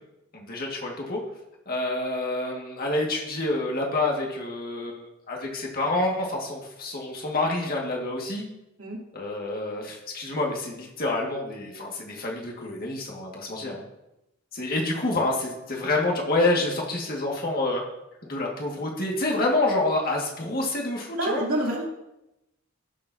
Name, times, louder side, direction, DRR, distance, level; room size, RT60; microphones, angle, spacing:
voice 1, 0.3-1.2 1.7-8.4 9.1-13.8 14.5-17.8 18.2-21.4, left 2 dB, 45° left, -1 dB, 1.8 m, -28 dB
voice 2, 21.2-21.9, right 1 dB, 85° right, -3 dB, 2.7 m, -28 dB
17.0 x 6.9 x 2.7 m, 0.90 s
head